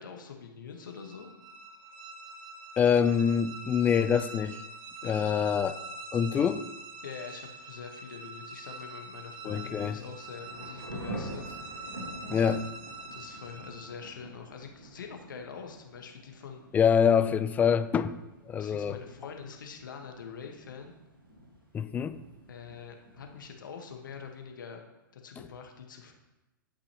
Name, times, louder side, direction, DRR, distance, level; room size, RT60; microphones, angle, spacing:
voice 1, 0.0-1.3 5.0-5.6 7.0-11.7 13.1-16.6 18.6-20.9 22.5-24.8 25.1-26.1, left 6 dB, 70° left, 4 dB, 1.3 m, -44 dB
sound 1, 0.8-14.1, right 2 dB, 40° right, 1.1 m, -45 dB
voice 2, 2.8-4.6 5.0-5.8 6.1-6.6 9.5-10.0 12.3-12.7 16.7-18.2 18.5-18.9 21.7-22.2, left 7 dB, 15° left, 13 dB, 0.3 m, -25 dB
Thunder / Rain, 9.9-24.4, right 1 dB, 90° right, 2.0 m, -47 dB
11.5 x 5.5 x 2.9 m, 1.0 s
figure-of-eight pair, 110°, 11 cm